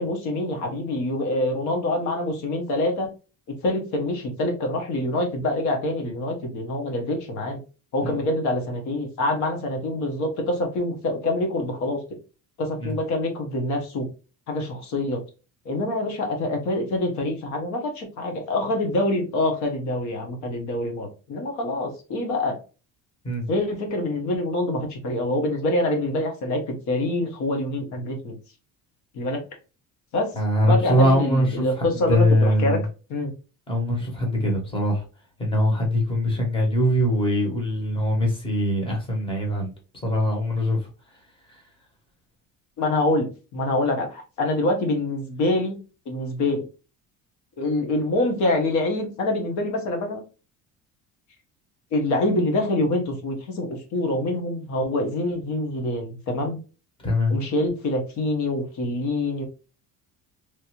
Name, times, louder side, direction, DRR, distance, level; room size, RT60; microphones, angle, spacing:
voice 1, 0.0-3.1 3.6-7.6 7.9-12.0 12.6-14.1 14.5-15.2 15.6-22.6 23.5-28.3 29.1-29.4 30.1-30.3 30.7-32.8 33.1-33.3 42.8-45.8 46.1-46.6 47.6-50.2 51.9-56.6 57.3-59.4, left 2 dB, 55° left, 1.1 m, -25 dB
voice 2, 30.3-31.6 31.9-32.8 33.7-35.0 35.4-39.7 40.0-40.9 41.5-41.6 57.0-57.3, equal, 15° left, 1.0 m, -22 dB
3.2 x 2.6 x 2.9 m
cardioid pair, 170°, 33 cm